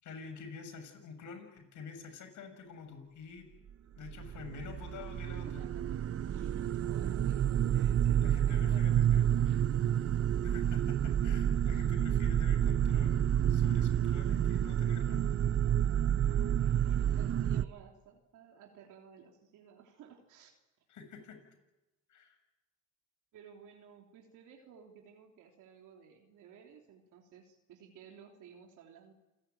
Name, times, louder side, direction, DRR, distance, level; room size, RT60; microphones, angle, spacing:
voice 1, 0.0-3.5 4.0-5.6 8.2-9.3 10.4-15.2 16.2-16.4 20.9-21.4 22.1-22.4, left 5 dB, 75° left, 8 dB, 6.2 m, -48 dB
sound 1, 4.1-17.6, right 10 dB, 50° right, 0.8 m, -29 dB
voice 2, 5.3-6.0 6.3-9.9 11.7-11.9 16.4-20.5 23.3-29.1, right 7 dB, 90° right, 2 dB, 3.3 m, -56 dB
28.5 x 18.0 x 9.2 m, 1.0 s
cardioid pair, 90°, 30 cm